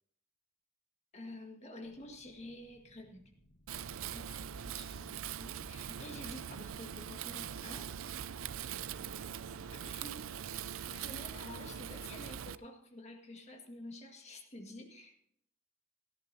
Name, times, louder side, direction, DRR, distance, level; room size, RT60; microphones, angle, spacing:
voice 1, 1.1-3.2 4.0-7.9 9.7-15.3, left 1 dB, 35° left, 3 dB, 1.7 m, -50 dB
sound 1, 1.8-11.8, left 1 dB, 80° left, 1.3 m, -66 dB
Wind, 3.7-12.6, right 8 dB, 85° right, 0.5 m, -42 dB
voice 2, 3.9-4.0, right 2 dB, 45° right, 2 dB, 2.3 m, -65 dB
18.0 x 14.0 x 2.7 m, 0.70 s
head